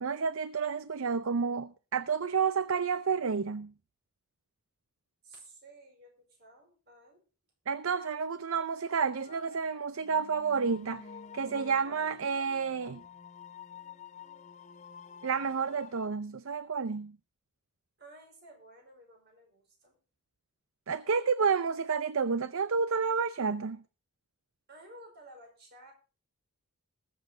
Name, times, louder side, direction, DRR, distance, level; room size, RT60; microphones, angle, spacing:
voice 1, 0.0-3.7 7.7-11.0 11.3-13.0 15.2-17.2 20.9-23.8, right 5 dB, 65° right, 0.5 m, -30 dB
voice 2, 5.2-7.2 18.0-20.0 24.7-25.9, right 1 dB, 45° right, 5.1 m, -54 dB
sound 1, 9.2-16.1, left 6 dB, 30° left, 0.6 m, -50 dB
20.5 x 7.6 x 3.8 m
head